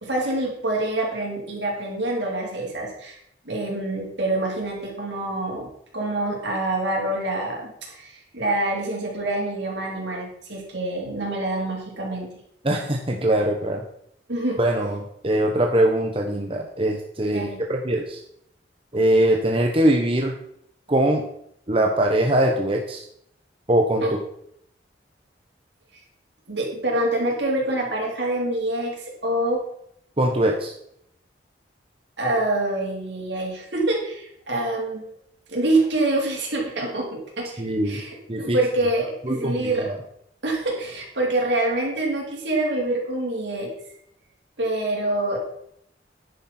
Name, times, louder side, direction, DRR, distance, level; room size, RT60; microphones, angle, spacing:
voice 1, 0.0-3.2 3.5-12.3 14.3-14.6 17.3-17.6 24.0-24.1 26.5-29.6 32.2-35.1 35.5-39.9 40.4-43.7 44.6-45.4, right 2 dB, 75° right, -1 dB, 3.7 m, -26 dB
voice 2, 12.6-13.8 14.6-18.2 18.9-20.3 20.9-21.2 21.7-23.0 23.7-24.0 30.2-30.7 37.6-38.0 38.3-38.6 39.3-40.0, right 1 dB, 30° right, 1 dB, 1.0 m, -22 dB
10.5 x 9.8 x 4.4 m, 0.73 s
head